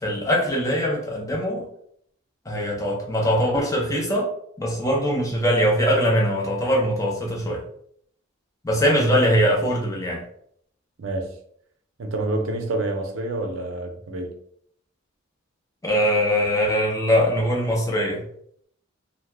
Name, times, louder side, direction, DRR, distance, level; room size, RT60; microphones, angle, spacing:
voice 1, 0.0-1.7 2.5-4.3 4.6-7.6 8.6-10.2 15.8-18.2, equal, 15° left, 0.6 m, -22 dB
voice 2, 11.0-11.3 12.0-14.3, right 2 dB, 70° right, 0.5 m, -28 dB
2.8 x 2.0 x 3.3 m
head